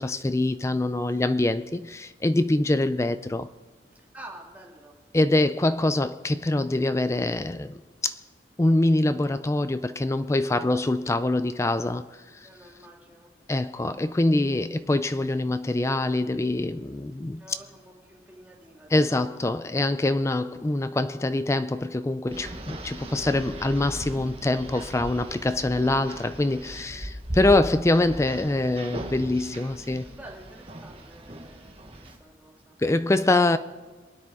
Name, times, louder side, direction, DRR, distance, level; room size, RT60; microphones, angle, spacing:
voice 1, 0.0-3.5 5.1-8.1 8.6-12.1 13.5-17.4 18.9-30.1 32.8-33.6, left 2 dB, 15° left, 0.4 m, -24 dB
voice 2, 3.9-5.0 10.6-10.8 12.4-13.3 17.4-19.4 26.8-27.1 30.0-32.8, right 1 dB, 10° right, 2.0 m, -49 dB
sound 1, 22.3-32.2, right 1 dB, 35° right, 1.4 m, -38 dB
27.5 x 10.0 x 3.7 m
head